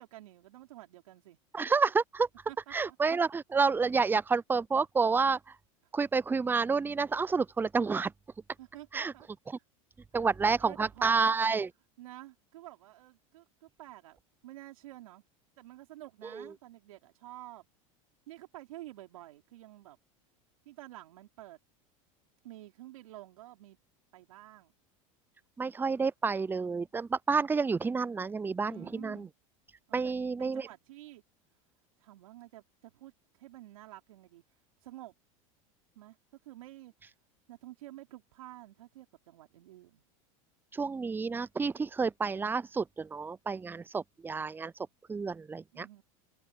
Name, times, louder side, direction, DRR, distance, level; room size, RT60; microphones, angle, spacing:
voice 1, 0.0-1.4 2.5-3.0 8.6-9.6 10.4-11.3 12.0-15.2 15.6-17.7 18.3-20.0 20.7-21.6 22.4-23.8 24.1-24.7 28.7-29.3 29.9-31.2 32.0-33.1 33.4-34.4 34.8-35.1 35.9-36.2 36.4-36.9 37.5-40.0 45.7-46.0, right 16 dB, 85° right, 4.0 m, -50 dB
voice 2, 1.5-2.3 2.7-5.4 5.9-8.1 8.9-9.1 9.5-9.6 10.1-11.7 16.3-16.5 25.6-29.3 29.9-30.7 40.7-44.7 45.1-45.9, right 4 dB, 10° right, 0.5 m, -29 dB
supercardioid pair, 110°, 17 cm